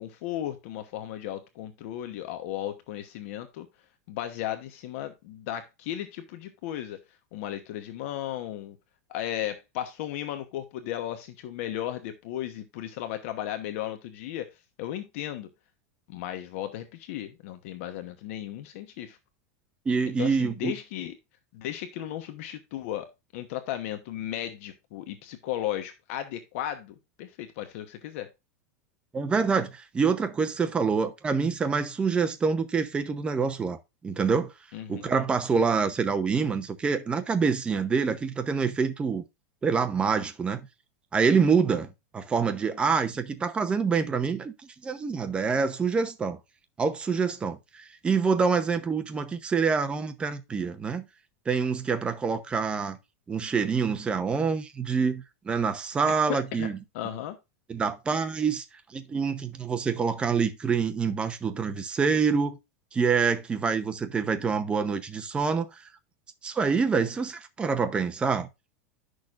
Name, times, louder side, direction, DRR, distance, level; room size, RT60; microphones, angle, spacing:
voice 1, 0.0-3.7 4.1-7.0 7.3-8.8 9.1-14.5 14.8-15.5 16.1-19.2 20.2-21.1 21.5-23.1 23.3-28.3 34.7-35.1 56.3-57.4, left 12 dB, 55° left, 1.1 m, -35 dB
voice 2, 19.9-20.7 29.1-33.8 34.0-34.5 34.9-39.2 39.6-40.6 41.1-46.4 46.8-51.1 51.5-53.0 53.3-56.8 57.7-58.6 58.9-62.6 62.9-65.8 66.4-68.5, right 5 dB, 10° right, 0.8 m, -26 dB
10.5 x 6.4 x 2.5 m
supercardioid pair, 165°, 9 cm